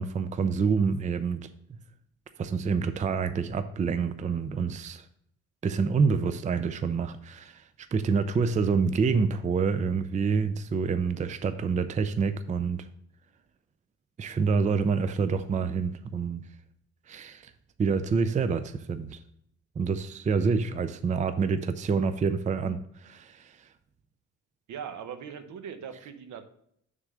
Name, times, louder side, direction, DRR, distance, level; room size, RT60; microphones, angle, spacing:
voice 1, 0.0-1.8 2.4-5.0 5.6-7.6 7.9-12.9 14.2-16.4 17.1-17.5 17.8-19.2 19.8-23.5, right 5 dB, 25° right, 0.4 m, -27 dB
voice 2, 24.7-26.4, right 7 dB, 70° right, 0.9 m, -40 dB
6.4 x 3.7 x 6.2 m
cardioid pair, 90°, 30 cm